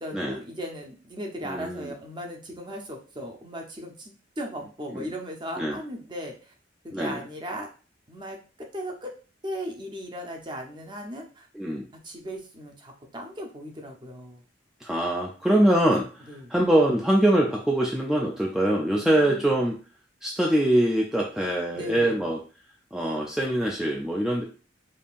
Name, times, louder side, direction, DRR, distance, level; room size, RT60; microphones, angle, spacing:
voice 1, 0.0-6.5 6.8-7.7 8.1-9.1 9.4-11.5 11.9-14.4 16.3-16.5 18.9-19.6 21.7-22.2, equal, 25° right, 1 dB, 0.8 m, -37 dB
voice 2, 1.4-1.9 4.9-5.1 5.6-5.8 6.9-7.2 11.5-11.9 14.8-19.8 20.2-22.4 22.9-24.4, right 1 dB, 5° right, -2 dB, 0.4 m, -23 dB
5.2 x 2.7 x 2.5 m, 0.36 s
head